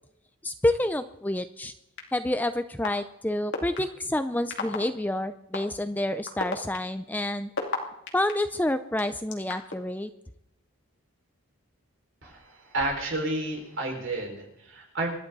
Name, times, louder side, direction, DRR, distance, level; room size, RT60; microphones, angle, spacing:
voice 1, 0.4-1.7 2.1-7.5 8.1-10.1, left 1 dB, 10° left, 10 dB, 0.5 m, -28 dB
sound 1, 2.0-2.1 2.8-2.9 3.5-3.8 4.5-4.8 5.5-5.6 6.3-8.3 9.0-9.8, left 4 dB, 55° left, 2.6 m, -31 dB
voice 2, 12.2-15.1, right 2 dB, 60° right, 0 dB, 5.5 m, -31 dB
27.0 x 12.0 x 4.1 m, 0.83 s
head